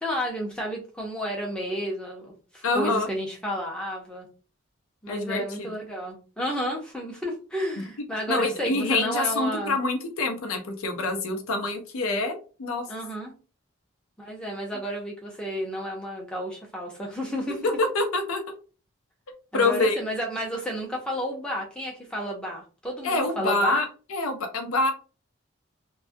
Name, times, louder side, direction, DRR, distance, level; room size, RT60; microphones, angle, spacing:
voice 1, 0.0-4.3 5.0-9.8 12.9-13.3 14.2-17.6 19.5-23.8, equal, 5° left, -1 dB, 0.6 m, -31 dB
voice 2, 2.6-3.1 5.1-5.7 7.8-7.9 8.3-12.8 17.6-18.4 19.5-20.0 23.0-24.9, left 2 dB, 90° left, 5 dB, 0.5 m, -26 dB
2.2 x 2.1 x 2.6 m, 0.35 s
head